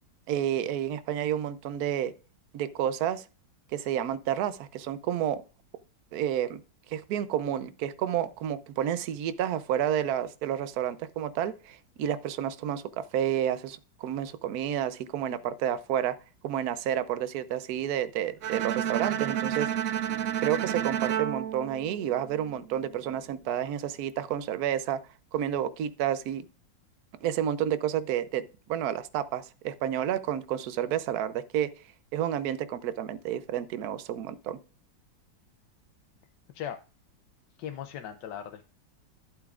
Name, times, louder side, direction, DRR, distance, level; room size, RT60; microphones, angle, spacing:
voice 1, 0.3-2.1 2.5-3.2 3.7-5.4 6.1-6.6 6.9-16.2 16.4-19.7 20.4-25.0 25.3-26.4 27.2-31.7 32.1-34.6, right 10 dB, 65° right, 1.0 m, -30 dB
Bowed string instrument, 18.4-22.6, right 9 dB, 90° right, 0.7 m, -31 dB
voice 2, 37.6-38.7, left 9 dB, 70° left, 1.2 m, -38 dB
11.5 x 8.4 x 2.4 m
omnidirectional pair, 2.1 m